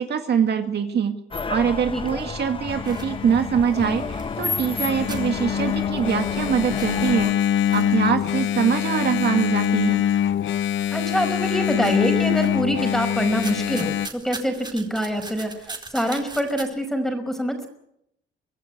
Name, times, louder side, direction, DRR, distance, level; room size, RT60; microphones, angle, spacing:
voice 1, 0.0-7.3 7.7-10.0, right 7 dB, 55° right, 5 dB, 2.1 m, -23 dB
sound 1, 1.3-7.3, left 4 dB, 25° left, 1.0 m, -31 dB
voice 2, 1.9-2.3 10.9-17.7, equal, ahead, 6 dB, 5.1 m, -25 dB
Engine, 2.7-14.1, left 10 dB, 75° left, 0.8 m, -25 dB
sound 2, 2.8-4.8 5.1-6.4 6.6-10.5 10.9-11.5 11.8-13.0 13.3-16.6, right 3 dB, 20° right, 4.5 m, -41 dB
25.0 x 14.0 x 9.3 m, 0.76 s
cardioid pair, 90°, 20 cm